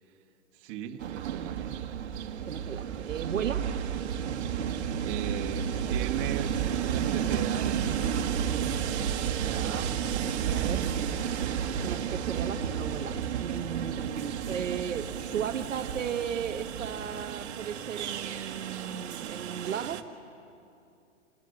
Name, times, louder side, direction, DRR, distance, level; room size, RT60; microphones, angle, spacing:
voice 1, 0.5-1.8 5.0-6.5 6.8-8.4, right 11 dB, 40° right, 4 dB, 1.6 m, -38 dB
Train, 1.0-20.0, right 8 dB, 60° right, 1.5 m, -32 dB
voice 2, 2.4-3.7 9.4-9.9 10.5-11.5 11.8-20.1, right 8 dB, 75° right, 7 dB, 1.2 m, -36 dB
28.0 x 18.5 x 7.9 m, 2.6 s
hypercardioid pair, 125°, 38 cm